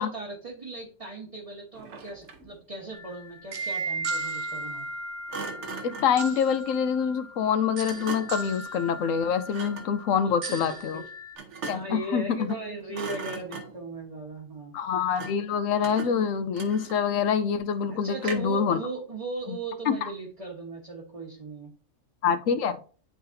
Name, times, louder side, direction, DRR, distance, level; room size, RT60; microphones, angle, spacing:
voice 1, 0.0-4.9 10.2-11.1 11.7-14.7 17.9-21.7, right 3 dB, 30° right, 1.2 m, -38 dB
Thump thud, 1.7-2.6 5.3-6.2 7.9-8.5 9.5-10.0 11.4-12.0 12.4-12.6 12.9-13.9 15.2-15.5 15.8-17.2 18.2-18.7, right 4 dB, 65° right, 1.2 m, -39 dB
sound 1, 2.9-11.4, right 3 dB, 50° right, 0.6 m, -36 dB
voice 2, 5.8-11.0 11.7-12.6 14.7-18.8 19.5-19.6 19.9-20.1 22.2-22.8, left 7 dB, 85° left, 1.0 m, -26 dB
10.5 x 4.0 x 2.7 m
omnidirectional pair, 1.3 m